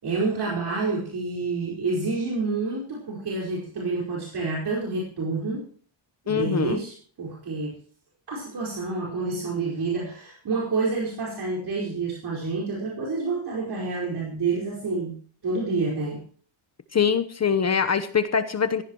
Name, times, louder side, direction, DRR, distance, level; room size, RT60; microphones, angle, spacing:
voice 1, 0.0-5.6 6.2-7.7 8.3-15.2 15.4-16.2, right 3 dB, 55° right, -2 dB, 5.0 m, -28 dB
voice 2, 6.3-6.8 16.9-18.8, left 6 dB, 35° left, 10 dB, 1.0 m, -23 dB
16.5 x 15.0 x 3.1 m, 0.44 s
cardioid pair, 145°, 47 cm